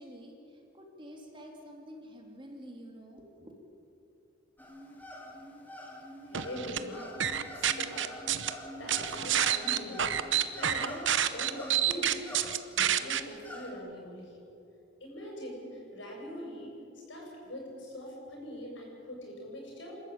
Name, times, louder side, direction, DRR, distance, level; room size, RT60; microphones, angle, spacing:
voice 1, 0.0-3.5, equal, 25° right, 1 dB, 2.9 m, -48 dB
sound 1, 4.6-13.7, equal, 10° left, 2.6 m, -46 dB
voice 2, 6.2-8.2 8.6-10.1 10.5-12.2 12.7-14.4 15.0-20.0, equal, 70° left, -1 dB, 7.8 m, -43 dB
sound 2, 6.3-6.8 7.2-8.5 8.9-13.2, right 10 dB, 70° right, 1.0 m, -28 dB
28.5 x 13.5 x 8.8 m, 2.7 s
head